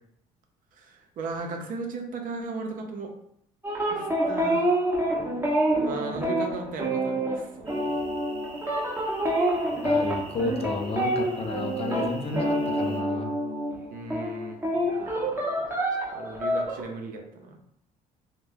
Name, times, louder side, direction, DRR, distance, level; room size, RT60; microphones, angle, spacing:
voice 1, 0.8-3.1 3.9-4.7 5.8-7.9 13.9-15.8 16.1-17.6, right 3 dB, 60° right, 3 dB, 0.5 m, -37 dB
sound 1, 3.6-13.8 14.1-16.8, right 1 dB, 15° right, 0.6 m, -27 dB
sound 2, 7.7-13.0, right 2 dB, 35° right, 0.9 m, -47 dB
voice 2, 9.8-13.3, left 3 dB, 40° left, 3 dB, 0.4 m, -31 dB
2.1 x 2.1 x 3.2 m, 0.72 s
supercardioid pair, 80°, 16 cm